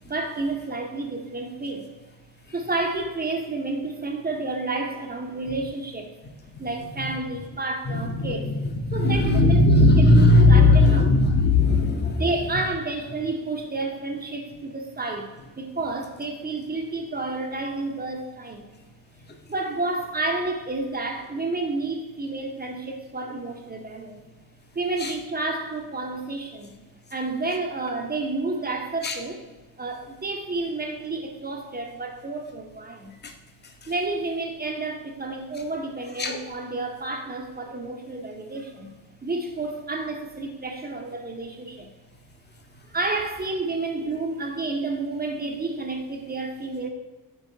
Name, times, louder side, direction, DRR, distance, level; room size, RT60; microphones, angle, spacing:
voice 1, 0.1-1.9 2.5-6.1 6.6-8.5 8.9-9.6 10.0-11.1 12.0-18.6 19.5-24.2 24.7-26.7 27.1-29.4 29.8-33.1 33.9-38.9 39.2-41.9 42.8-46.9, right 3 dB, 20° right, 3 dB, 0.6 m, -30 dB
voice 2, 7.8-12.2 25.0-25.1 29.0-29.1 33.2-33.3 33.8-33.9 36.2-36.4, left 2 dB, 20° left, 3 dB, 0.7 m, -18 dB
5.3 x 3.4 x 2.7 m, 1.2 s
supercardioid pair, 65°, 46 cm